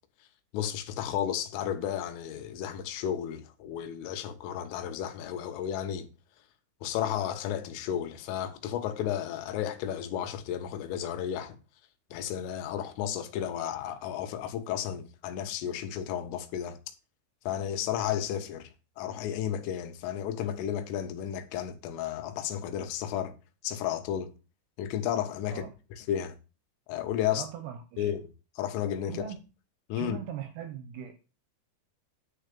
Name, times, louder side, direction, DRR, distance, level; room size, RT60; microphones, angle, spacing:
voice 1, 0.5-6.1 6.8-11.6 12.1-16.8 17.5-18.7 19.0-23.3 23.6-24.3 24.8-25.6 26.1-26.4 26.9-27.4 28.0-28.3 28.6-29.3 29.9-30.2, left 10 dB, 90° left, 3.7 m, -33 dB
voice 2, 27.3-28.1 29.1-29.4 30.0-31.2, right 9 dB, 75° right, 2.6 m, -40 dB
9.9 x 4.6 x 6.7 m
omnidirectional pair, 5.6 m